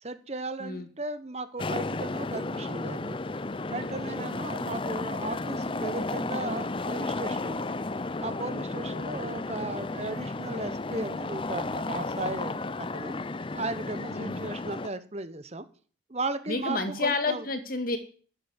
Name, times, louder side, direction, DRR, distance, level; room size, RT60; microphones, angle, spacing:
voice 1, 0.0-3.2 3.7-7.8 8.2-13.2 13.5-15.6 16.1-17.5, right 2 dB, 35° right, 12 dB, 1.1 m, -36 dB
sound 1, 1.6-14.9, left 2 dB, 25° left, 0.6 m, -33 dB
voice 2, 8.7-9.1 14.1-14.5 16.5-18.0, left 3 dB, 45° left, 8 dB, 2.3 m, -31 dB
13.0 x 8.2 x 9.8 m, 0.43 s
head